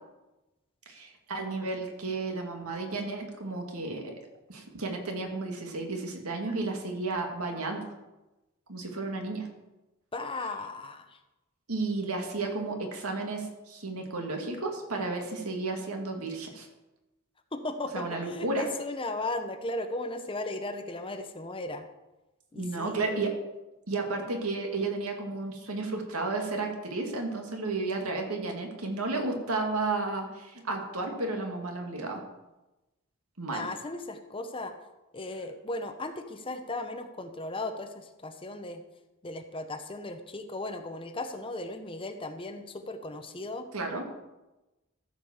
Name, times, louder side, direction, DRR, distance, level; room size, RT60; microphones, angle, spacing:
voice 1, 0.9-4.1 4.5-7.8 8.7-9.5 11.7-16.7 17.9-18.7 22.6-23.3 23.9-32.2 33.4-33.7 43.7-44.0, right 3 dB, 75° right, 2 dB, 2.2 m, -32 dB
voice 2, 10.1-11.1 17.5-21.9 22.5-23.0 33.5-34.7 35.1-38.8 39.2-43.7, left 2 dB, 25° left, 7 dB, 0.8 m, -36 dB
14.5 x 5.1 x 7.2 m, 1.0 s
head